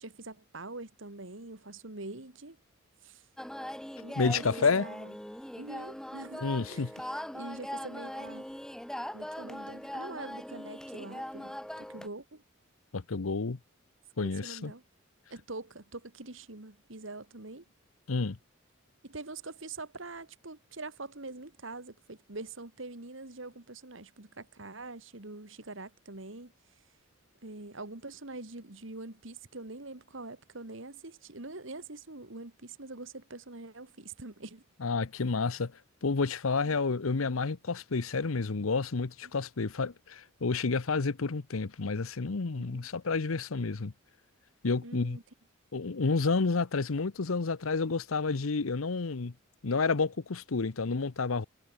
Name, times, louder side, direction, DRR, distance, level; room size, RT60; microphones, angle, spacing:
voice 1, 0.0-2.6 3.0-3.3 4.0-5.1 5.6-7.0 7.3-8.5 9.1-12.4 14.4-14.8 15.3-17.6 19.0-26.5 27.4-34.6 42.6-42.9 44.8-45.2, right 2 dB, 65° right, 2.2 m, -44 dB
sound 1, 3.4-12.1, equal, 5° left, 0.8 m, -40 dB
voice 2, 4.2-4.8 6.4-6.9 12.9-13.6 14.2-14.7 18.1-18.4 34.8-35.7 36.0-43.9 44.6-45.2 45.7-49.3 49.6-51.5, left 4 dB, 90° left, 0.8 m, -30 dB
head